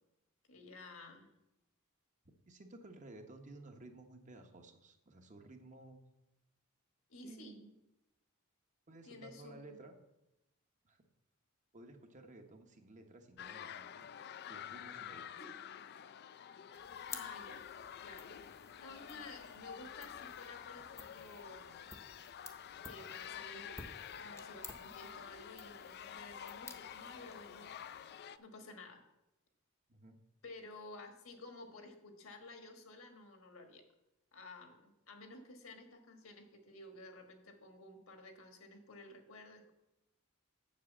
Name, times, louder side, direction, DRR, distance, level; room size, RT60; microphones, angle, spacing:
voice 1, 0.5-1.3 7.1-7.7 9.0-9.8 15.4-15.5 17.1-17.6 18.0-18.3 18.8-21.9 22.8-23.7 24.2-27.7 28.4-29.0 30.4-33.8 34.3-39.7, left 2 dB, 75° left, 5 dB, 1.5 m, -53 dB
voice 2, 2.5-6.0 7.2-7.6 8.9-9.9 10.8-11.0 11.7-14.1 14.5-15.3 29.9-30.2, right 2 dB, 35° right, 5 dB, 1.0 m, -55 dB
sound 1, 13.4-28.4, left 9 dB, 50° left, 0.4 m, -49 dB
sound 2, 16.7-28.4, left 3 dB, 15° left, 0.7 m, -55 dB
7.4 x 6.3 x 7.3 m, 0.91 s
head